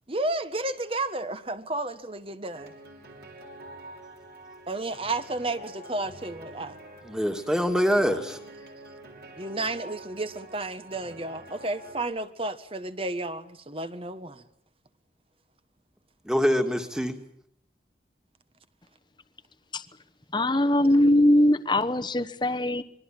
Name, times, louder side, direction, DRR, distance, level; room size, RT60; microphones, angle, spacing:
voice 1, 0.1-2.7 4.7-6.8 9.4-14.4, right 2 dB, 30° right, 11 dB, 1.4 m, -32 dB
sound 1, 2.5-12.0, right 1 dB, 60° right, 5.9 m, -46 dB
voice 2, 7.0-8.4 16.2-17.2, equal, 5° right, 6 dB, 2.2 m, -24 dB
voice 3, 20.3-22.8, left 1 dB, 25° left, 10 dB, 1.1 m, -21 dB
26.5 x 22.5 x 7.6 m, 0.67 s
head